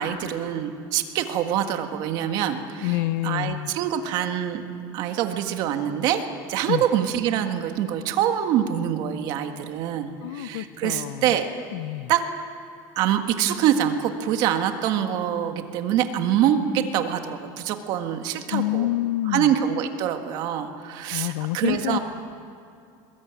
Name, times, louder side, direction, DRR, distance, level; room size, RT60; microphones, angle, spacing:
voice 1, 0.0-4.6 4.9-6.2 6.5-11.5 12.1-12.3 12.9-18.9 19.2-22.0, right 10 dB, 45° right, 6 dB, 1.7 m, -25 dB
voice 2, 2.8-3.7 6.7-6.8 10.2-11.2 11.7-12.1 18.5-19.5 21.1-22.0, left 16 dB, 85° left, 14 dB, 0.7 m, -27 dB
22.0 x 21.5 x 8.9 m, 2.4 s
cardioid pair, 180°, 10 cm